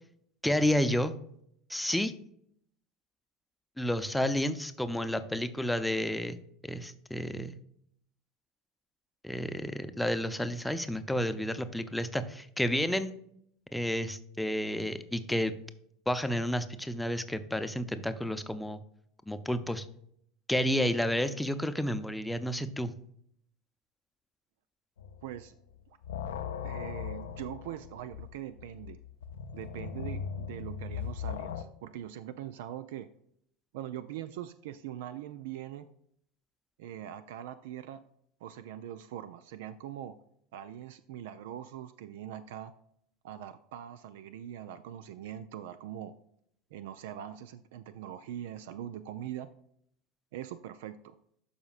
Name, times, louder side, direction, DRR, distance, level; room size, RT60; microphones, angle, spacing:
voice 1, 0.4-1.2 1.7-2.1 3.8-6.4 6.6-7.6 9.2-13.2 13.7-15.5 16.1-18.8 19.3-19.9 20.5-22.9, left 1 dB, 5° left, 10 dB, 0.6 m, -31 dB
sound 1, 25.0-25.4 25.7-31.6, left 7 dB, 75° left, 0.5 m, -39 dB
voice 2, 25.2-25.5 26.6-29.0 29.5-33.1 33.7-35.9 36.8-38.0 38.4-40.2 40.5-42.7 43.2-46.1 46.7-49.5 50.3-51.1, right 11 dB, 70° right, 13 dB, 0.3 m, -42 dB
12.0 x 5.0 x 2.4 m, 0.69 s
hypercardioid pair, 80°, 0 cm